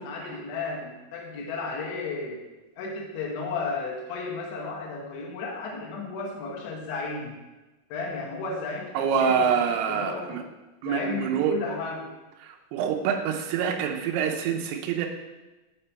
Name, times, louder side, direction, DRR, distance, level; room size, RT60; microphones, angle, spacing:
voice 1, 0.1-2.4 2.8-7.4 7.9-9.5 9.9-10.4 10.9-12.1, left 3 dB, 90° left, -1 dB, 3.6 m, -33 dB
voice 2, 9.0-10.4 10.8-11.5 12.4-15.1, right 7 dB, 80° right, 2 dB, 2.5 m, -26 dB
6.7 x 5.6 x 4.5 m, 1.1 s
omnidirectional pair, 5.2 m